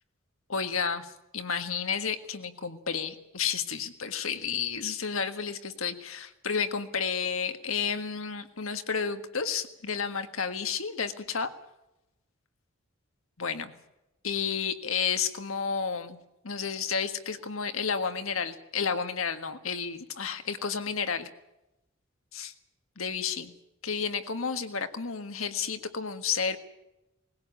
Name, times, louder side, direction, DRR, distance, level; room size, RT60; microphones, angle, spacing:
voice 1, 0.5-11.5 13.4-13.7 14.2-16.2 16.4-21.3 22.3-22.5 23.0-23.5 23.8-26.6, left 6 dB, 90° left, 8 dB, 1.7 m, -31 dB
20.5 x 16.5 x 8.5 m, 0.93 s
head